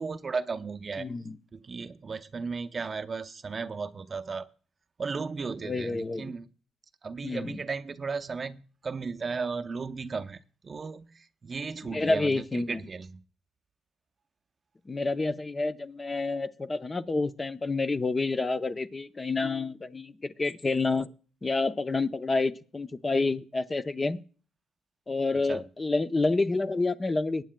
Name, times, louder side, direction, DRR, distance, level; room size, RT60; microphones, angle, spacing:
voice 1, 0.0-1.1 1.5-4.5 5.0-6.5 7.0-11.1 11.4-13.2 25.5-25.6, right 4 dB, 35° right, 0.6 m, -35 dB
voice 2, 1.0-1.4 5.6-6.3 7.2-7.6 11.8-12.8 14.9-21.1 21.4-24.2 25.1-27.4, left 3 dB, 25° left, 0.6 m, -29 dB
22.0 x 9.1 x 2.2 m
cardioid pair, 90°, 0 cm